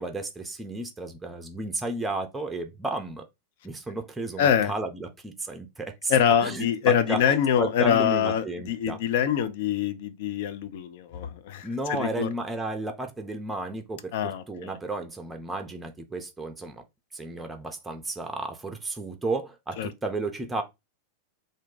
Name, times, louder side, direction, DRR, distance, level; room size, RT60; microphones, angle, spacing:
voice 1, 0.0-3.2 3.6-6.1 6.4-9.0 11.6-16.8 17.1-20.6, right 2 dB, 10° right, 0.5 m, -33 dB
voice 2, 4.4-4.7 6.1-12.3 14.1-14.8 19.8-19.9, left 8 dB, 50° left, 0.4 m, -25 dB
2.5 x 2.2 x 3.7 m
figure-of-eight pair, 90°, 0 cm